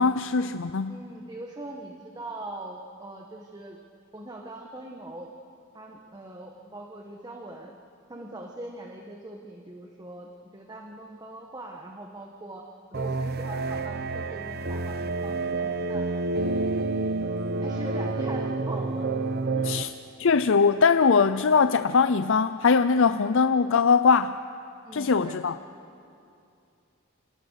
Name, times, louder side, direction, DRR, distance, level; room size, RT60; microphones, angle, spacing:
voice 1, 0.0-1.0 19.6-19.9 20.2-24.4 24.9-25.6, left 5 dB, 65° left, 11 dB, 0.5 m, -21 dB
voice 2, 0.9-3.8 4.1-5.3 5.7-7.7 8.1-12.6 12.9-16.0 17.6-19.1 19.5-19.8 24.8-25.4, right 1 dB, 20° right, 1 dB, 1.5 m, -41 dB
sound 1, 12.9-19.8, right 3 dB, 50° right, 0.9 m, -29 dB
29.0 x 27.0 x 6.5 m, 2.6 s
head